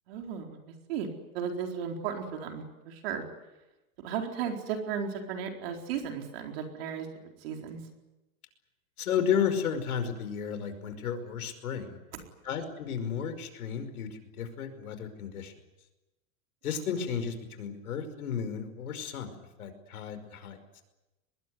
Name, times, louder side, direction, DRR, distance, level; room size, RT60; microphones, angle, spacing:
voice 1, 0.1-0.6 0.9-1.1 1.3-3.2 4.0-7.8 12.1-12.2, right 7 dB, 40° right, 3 dB, 4.4 m, -35 dB
voice 2, 9.0-12.0 12.4-14.1 14.4-15.5 16.6-19.3 19.6-20.8, left 7 dB, 85° left, 10 dB, 5.5 m, -33 dB
24.0 x 21.5 x 9.7 m, 1.0 s
supercardioid pair, 175°, 43 cm